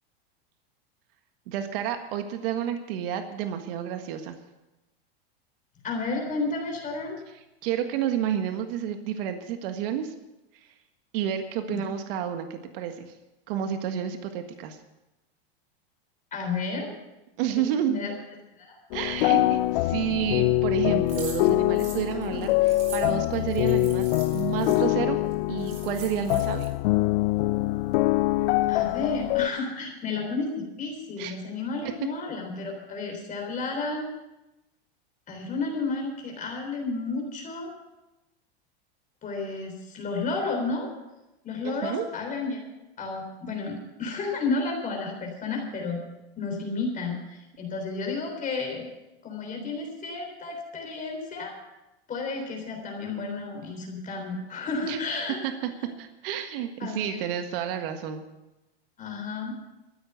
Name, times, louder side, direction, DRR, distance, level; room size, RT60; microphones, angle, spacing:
voice 1, 1.5-4.4 7.6-10.1 11.1-13.1 13.5-14.8 17.4-17.9 18.9-25.2 25.5-26.7 31.2-31.3 32.0-32.1 41.6-42.1 54.9-55.0 55.4-55.5 55.8-58.2, right 9 dB, 60° right, 7 dB, 1.6 m, -30 dB
voice 2, 5.8-7.2 11.7-11.9 16.3-16.9 17.6-18.1 18.6-18.8 22.3-22.4 28.7-34.1 35.3-37.7 39.2-40.9 41.4-42.7 43.0-46.0 46.4-48.9 49.2-51.5 52.1-55.4 56.8-57.2 59.0-59.5, left 3 dB, 25° left, 2 dB, 3.6 m, -32 dB
sound 1, 18.9-29.5, left 18 dB, 60° left, 0.5 m, -24 dB
sound 2, 21.1-24.8 25.3-25.4 25.6-26.7, right 5 dB, 45° right, 6.7 m, -43 dB
14.0 x 9.7 x 8.0 m, 0.97 s
supercardioid pair, 135°, 32 cm